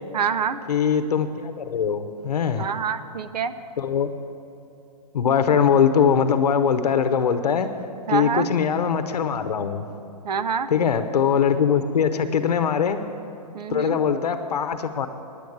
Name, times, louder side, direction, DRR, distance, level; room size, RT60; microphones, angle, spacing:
voice 1, 0.1-0.6 2.6-3.5 8.1-8.5 10.2-10.7 13.5-14.0, right 6 dB, 85° right, 12 dB, 0.7 m, -26 dB
voice 2, 0.7-2.7 3.8-4.1 5.1-7.7 8.1-9.8 10.7-13.0 13.7-15.1, left 7 dB, 75° left, 9 dB, 0.7 m, -21 dB
10.0 x 8.5 x 7.9 m, 2.7 s
hypercardioid pair, 180°, 20 cm